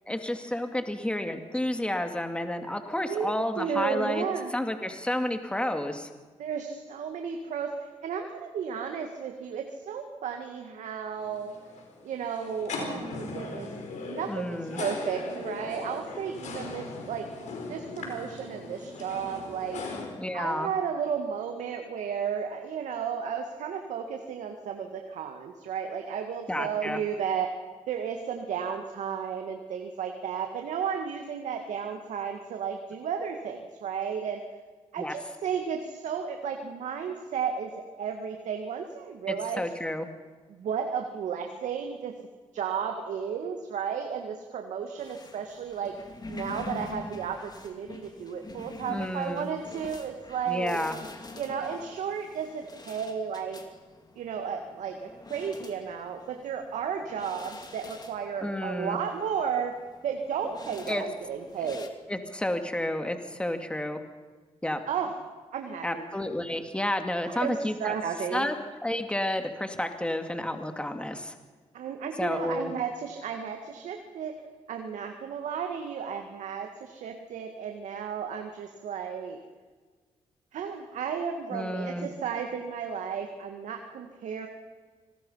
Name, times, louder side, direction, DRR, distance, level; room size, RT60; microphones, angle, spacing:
voice 1, 0.1-4.2 4.5-6.1 14.3-14.8 20.2-20.7 26.5-27.0 35.0-35.1 39.3-40.1 48.9-49.5 50.5-50.9 58.4-59.0 60.9-61.0 62.1-64.0 64.6-64.8 65.8-67.9 68.3-68.5 68.8-71.3 72.2-72.7 81.5-82.1, left 1 dB, 10° left, 6 dB, 2.5 m, -31 dB
voice 2, 3.0-4.5 6.4-11.6 12.0-13.7 14.0-17.3 17.7-19.8 20.3-27.5 27.9-34.4 34.9-39.7 40.6-42.1 42.5-46.0 46.3-50.8 51.4-53.6 54.2-61.9 64.9-65.2 65.5-66.1 67.2-68.5 71.7-74.4 74.7-79.4 80.5-84.5, right 7 dB, 80° right, 4 dB, 2.0 m, -33 dB
sound 1, 11.2-20.1, left 3 dB, 80° left, 5.1 m, -39 dB
sound 2, 45.0-61.9, left 3 dB, 35° left, 2.9 m, -46 dB
26.0 x 20.0 x 5.7 m, 1.4 s
cardioid pair, 60°, 12 cm